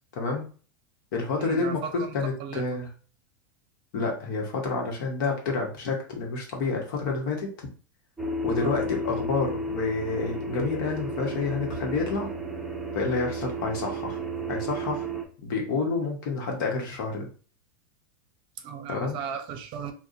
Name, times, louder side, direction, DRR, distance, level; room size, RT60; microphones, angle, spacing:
voice 1, 0.1-0.5 1.1-2.9 3.9-7.5 8.4-12.3 12.9-14.2 14.5-15.1 15.4-17.3 18.9-19.2, left 4 dB, 65° left, 1 dB, 1.2 m, -29 dB
voice 2, 1.4-2.8 8.6-8.8 18.6-19.9, right 7 dB, 45° right, 6 dB, 0.6 m, -36 dB
sound 1, 8.2-15.2, right 1 dB, ahead, 0.7 m, -33 dB
3.6 x 2.3 x 2.6 m, 0.38 s
hypercardioid pair, 110°, 11 cm